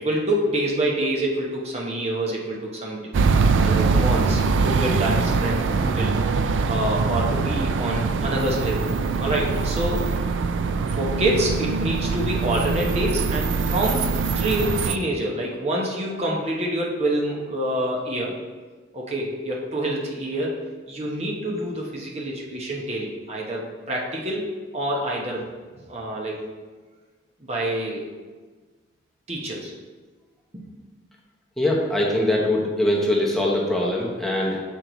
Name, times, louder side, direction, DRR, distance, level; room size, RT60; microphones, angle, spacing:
voice 1, 0.0-3.1 3.6-6.1 6.7-8.9 9.2-10.1 11.0-18.3 18.9-20.5 20.9-24.5 24.7-25.4 25.9-26.4 27.4-28.0 29.3-29.7 30.5-30.7, right 1 dB, 35° right, -3 dB, 1.0 m, -27 dB
sound 1, 3.1-15.0, right 4 dB, 80° right, 0.4 m, -23 dB
voice 2, 31.6-34.6, left 1 dB, ahead, -4 dB, 0.9 m, -22 dB
6.5 x 4.6 x 3.9 m, 1.4 s
head